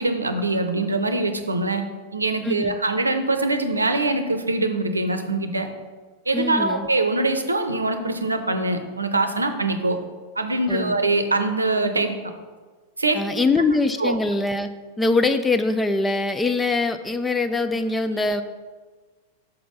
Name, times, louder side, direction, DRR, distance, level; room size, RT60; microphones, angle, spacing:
voice 1, 0.0-1.8 2.1-5.7 6.3-10.0 10.4-12.2 13.0-13.4 14.0-14.2, right 2 dB, 85° right, 8 dB, 0.7 m, -23 dB
voice 2, 2.4-2.7 6.3-6.9 10.7-11.0 13.1-14.7 15.0-18.4, left 3 dB, 10° left, 9 dB, 0.4 m, -23 dB
5.8 x 5.1 x 5.5 m, 1.4 s
figure-of-eight pair, 95°, 0 cm